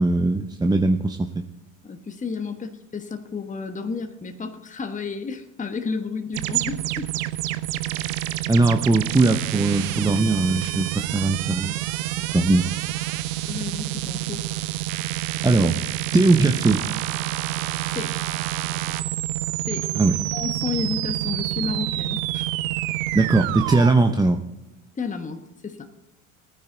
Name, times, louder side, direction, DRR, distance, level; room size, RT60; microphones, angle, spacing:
voice 1, 0.0-1.4 8.5-11.8 12.2-12.7 15.4-15.8 16.1-16.8 20.0-20.1 23.1-24.4, right 2 dB, 10° right, 5 dB, 0.8 m, -20 dB
voice 2, 1.8-7.1 13.5-14.5 17.9-18.2 19.6-22.5 24.9-25.9, left 5 dB, 20° left, 6 dB, 1.3 m, -32 dB
sound 1, 6.3-23.9, right 15 dB, 65° right, 0.9 m, -28 dB
19.5 x 9.8 x 3.9 m, 1.0 s
hypercardioid pair, 70°, 42 cm